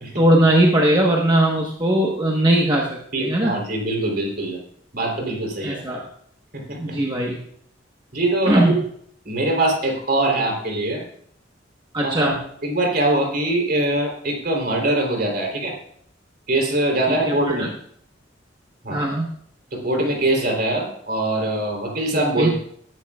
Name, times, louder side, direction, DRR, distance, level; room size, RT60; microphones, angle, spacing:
voice 1, 0.2-3.6 5.6-6.1 6.8-7.4 8.5-8.8 11.9-12.4 17.1-17.7 18.9-19.3 22.4-22.5, right 1 dB, 25° right, -2 dB, 1.2 m, -19 dB
voice 2, 3.1-4.6 4.9-5.8 6.5-7.0 8.1-8.8 9.3-11.0 12.0-15.7 16.5-17.7 18.8-19.0 19.7-22.6, right 2 dB, 50° right, 1 dB, 3.5 m, -23 dB
19.5 x 11.0 x 2.4 m, 0.65 s
head